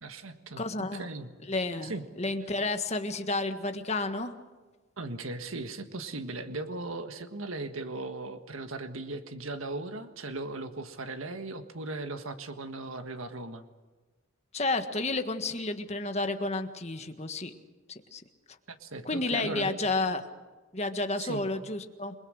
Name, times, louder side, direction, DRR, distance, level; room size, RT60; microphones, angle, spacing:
voice 1, 0.0-1.3 1.8-2.0 5.0-13.6 18.7-19.8 21.2-21.5, right 2 dB, 85° right, 8 dB, 1.6 m, -38 dB
voice 2, 0.6-1.1 1.5-4.3 14.5-17.5 18.1-18.2 19.0-20.2 20.7-22.1, left 2 dB, 30° left, 7 dB, 1.6 m, -31 dB
28.5 x 21.5 x 6.5 m, 1.3 s
head